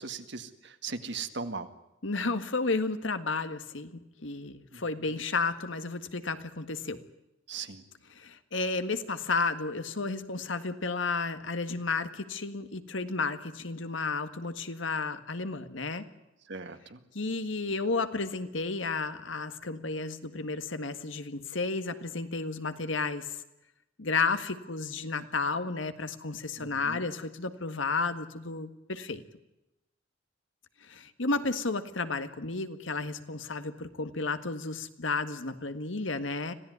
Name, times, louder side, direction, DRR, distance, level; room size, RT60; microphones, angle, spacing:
voice 1, 0.0-1.7 4.7-4.8 7.5-7.8 16.5-17.0 26.6-27.0, right 4 dB, 65° right, 9 dB, 2.0 m, -38 dB
voice 2, 2.0-7.0 8.1-16.1 17.1-23.4 24.0-29.2 30.8-36.5, left 3 dB, 70° left, 10 dB, 1.8 m, -32 dB
26.0 x 16.5 x 9.5 m, 0.92 s
head